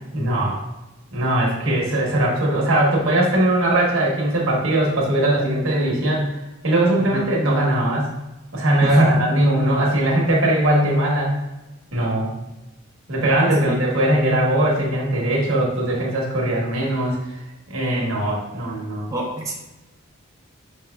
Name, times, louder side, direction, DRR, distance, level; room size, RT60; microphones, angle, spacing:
voice 1, 0.1-0.6 1.1-6.4 6.6-8.1 8.5-11.4 11.9-12.3 13.1-17.2 17.7-19.1, right 1 dB, 65° right, -2 dB, 1.1 m, -20 dB
voice 2, 7.0-7.3 8.8-9.3 10.2-10.3 13.6-13.8 19.1-19.5, right 1 dB, 15° right, -4 dB, 0.5 m, -24 dB
5.2 x 3.1 x 2.2 m, 1.0 s
head